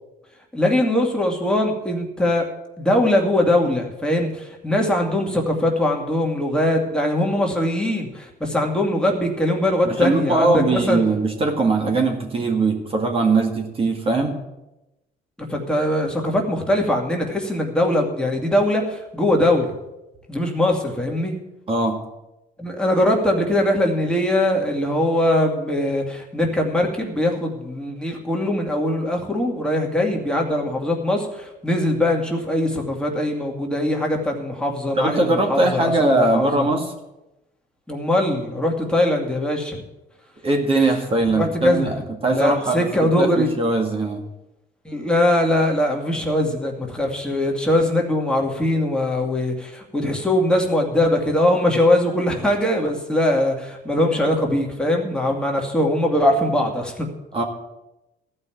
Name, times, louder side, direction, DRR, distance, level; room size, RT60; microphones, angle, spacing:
voice 1, 0.5-2.5 2.8-11.0 15.4-19.7 20.3-21.3 22.6-36.7 37.9-39.8 41.3-42.0 42.3-43.5 44.8-57.1, left 1 dB, 5° left, -1 dB, 2.4 m, -21 dB
voice 2, 9.9-14.4 21.7-22.0 35.0-36.9 40.4-42.0 42.2-44.2 57.3-57.4, right 2 dB, 35° right, 2 dB, 2.0 m, -20 dB
14.5 x 5.5 x 9.2 m, 0.95 s
cardioid pair, 110°, 17 cm